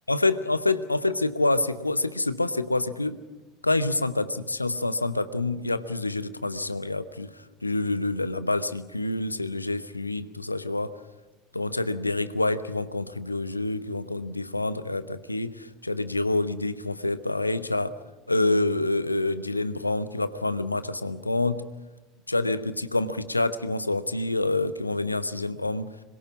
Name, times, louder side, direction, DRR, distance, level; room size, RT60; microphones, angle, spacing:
voice 1, 0.1-3.2 3.6-10.9 11.5-18.0 18.3-21.7 22.3-25.9, left 2 dB, 90° left, 14 dB, 0.9 m, -27 dB
25.5 x 22.5 x 6.0 m, 1.1 s
figure-of-eight pair, 70°, 0 cm